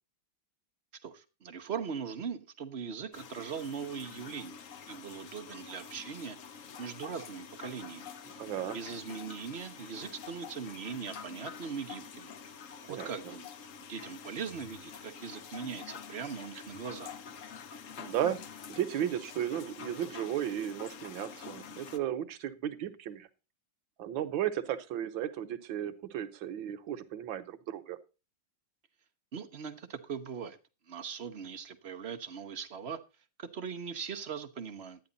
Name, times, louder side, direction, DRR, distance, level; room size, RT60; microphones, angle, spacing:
voice 1, 1.0-6.4 6.8-8.1 8.7-12.3 12.9-13.5 13.9-17.2 29.3-30.6 30.9-33.0 33.4-35.0, right 6 dB, 50° right, 0.8 m, -40 dB
sound 1, 3.1-22.0, left 7 dB, 60° left, 0.9 m, -47 dB
voice 2, 8.4-8.8 12.9-13.3 18.0-18.4 18.7-23.3 24.0-28.0, right 10 dB, 70° right, 1.6 m, -35 dB
12.0 x 9.6 x 3.9 m
omnidirectional pair, 2.2 m